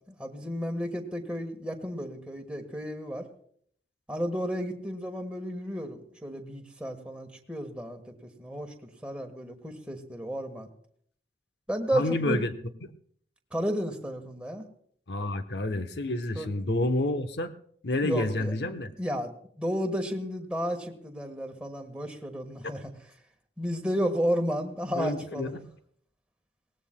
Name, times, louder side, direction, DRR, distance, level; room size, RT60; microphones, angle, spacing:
voice 1, 0.1-3.3 4.1-10.7 11.7-12.4 13.5-14.6 16.3-16.5 18.0-18.5 19.0-22.9 23.6-25.5, equal, 5° right, 3 dB, 1.3 m, -32 dB
voice 2, 11.9-12.5 12.8-12.9 15.1-17.5 17.8-18.9 24.9-25.6, left 2 dB, 65° left, 9 dB, 0.9 m, -29 dB
22.5 x 18.0 x 2.2 m, 0.63 s
head